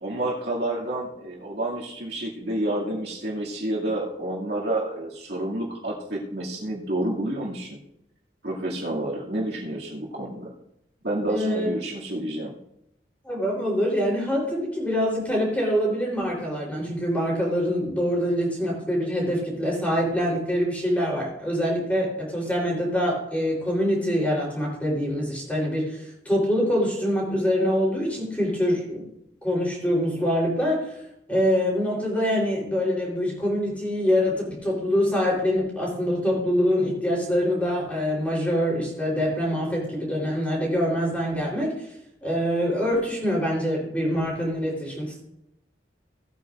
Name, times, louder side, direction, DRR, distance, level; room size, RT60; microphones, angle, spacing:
voice 1, 0.0-7.8 8.4-10.5 11.0-12.5, right 1 dB, 60° right, -4 dB, 2.5 m, -29 dB
voice 2, 11.3-11.7 13.2-29.0 29.4-31.0 31.3-41.7 42.2-45.2, equal, 10° left, -3 dB, 3.8 m, -25 dB
17.5 x 8.9 x 2.6 m, 0.82 s
head